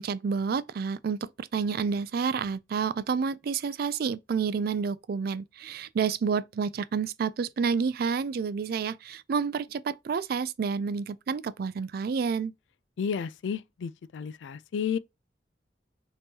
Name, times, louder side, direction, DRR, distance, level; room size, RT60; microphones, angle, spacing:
voice 1, 0.0-12.5, right 6 dB, 55° right, 0.3 m, -29 dB
voice 2, 13.0-15.0, left 7 dB, 80° left, 0.3 m, -32 dB
5.2 x 3.0 x 2.8 m
head